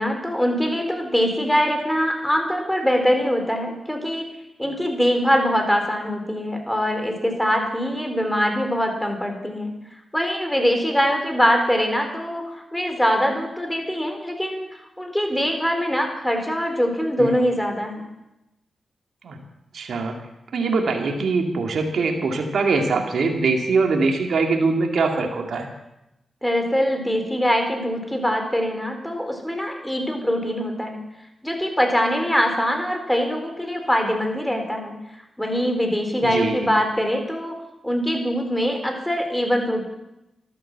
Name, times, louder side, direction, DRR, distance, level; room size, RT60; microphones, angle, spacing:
voice 1, 0.0-4.3 4.6-9.7 10.1-18.0 26.4-31.0 31.4-35.0 35.4-37.6 37.8-39.9, equal, 5° left, 4 dB, 4.3 m, -23 dB
voice 2, 19.7-20.2 20.5-25.7 36.2-36.6, right 4 dB, 75° right, 3 dB, 2.2 m, -22 dB
13.0 x 12.0 x 7.4 m, 0.91 s
supercardioid pair, 45°, 0 cm